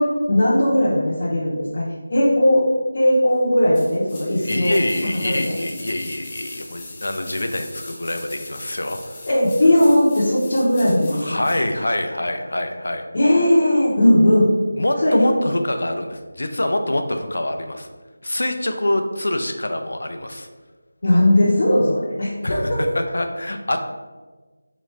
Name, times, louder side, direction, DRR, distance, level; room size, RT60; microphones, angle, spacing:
voice 1, 0.0-1.8 2.1-2.6 2.9-4.7 5.2-5.5 9.2-11.4 13.1-14.5 15.0-15.3 21.0-22.8, left 1 dB, 35° left, -9 dB, 0.8 m, -17 dB
sound 1, 3.7-11.7 12.0-12.1, left 2 dB, 10° left, 0.4 m, -40 dB
voice 2, 4.4-9.2 11.1-13.0 14.8-17.9 18.2-20.5 22.4-23.8, left 1 dB, 80° left, 6 dB, 0.5 m, -25 dB
3.8 x 3.1 x 3.3 m, 1.3 s
figure-of-eight pair, 175°, 0 cm